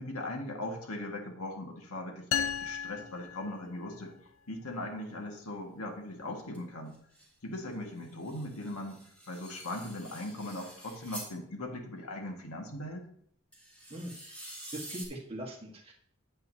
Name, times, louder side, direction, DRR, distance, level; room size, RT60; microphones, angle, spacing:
voice 1, 0.0-4.2 4.5-7.0 7.4-9.0 9.3-13.1, left 1 dB, 90° left, 2 dB, 1.7 m, -39 dB
sound 1, 2.3-4.1, left 8 dB, 65° left, 0.4 m, -35 dB
sound 2, 6.5-6.6 6.9-7.3 8.0-11.3 13.5-15.1, right 1 dB, 5° left, 1.6 m, -47 dB
voice 2, 13.9-15.9, right 1 dB, 25° right, -1 dB, 1.5 m, -42 dB
9.2 x 8.4 x 2.8 m, 0.65 s
head